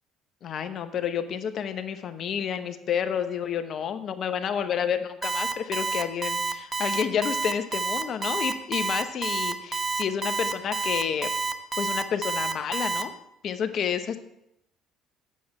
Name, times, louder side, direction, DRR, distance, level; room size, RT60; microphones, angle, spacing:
voice 1, 0.4-11.3 11.8-13.1 13.4-14.2, left 8 dB, 55° left, 9 dB, 0.9 m, -30 dB
Alarm, 5.2-13.0, right 5 dB, 30° right, 0.9 m, -28 dB
8.4 x 7.3 x 5.4 m, 0.80 s
supercardioid pair, 80°, 0 cm